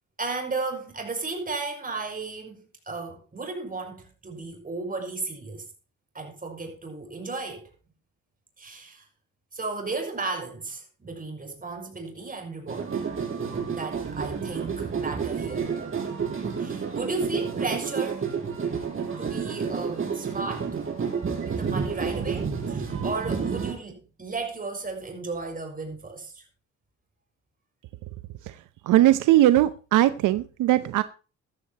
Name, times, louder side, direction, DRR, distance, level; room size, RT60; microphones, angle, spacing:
voice 1, 0.2-5.6 6.1-7.7 8.6-9.1 9.5-13.1 13.7-15.7 16.6-18.3 19.2-20.8 21.4-26.4, right 3 dB, 30° right, 6.2 m, -34 dB
sound 1, 12.7-23.7, right 6 dB, 45° right, 5.5 m, -30 dB
voice 2, 28.9-31.0, right 14 dB, 85° right, 0.8 m, -19 dB
14.5 x 13.5 x 3.0 m
cardioid pair, 90°, 30 cm